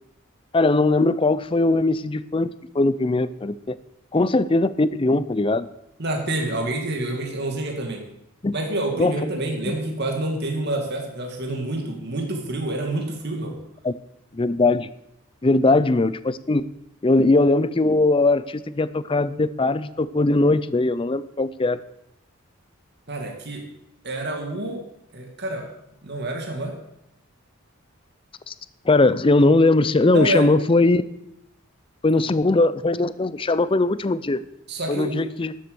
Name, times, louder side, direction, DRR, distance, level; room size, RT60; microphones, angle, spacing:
voice 1, 0.5-3.8 4.1-5.7 8.4-8.5 9.0-9.1 13.8-13.9 14.3-14.9 15.4-16.7 17.0-21.8 28.5-28.6 28.8-31.0 32.0-34.4 34.9-35.5, left 2 dB, 25° left, 16 dB, 0.5 m, -20 dB
voice 2, 6.0-8.1 8.5-13.6 23.1-23.7 24.0-24.8 25.1-25.7 26.0-26.8 30.1-30.5 34.7-35.2, right 1 dB, 55° right, 2 dB, 2.2 m, -27 dB
13.0 x 7.7 x 6.9 m, 0.80 s
head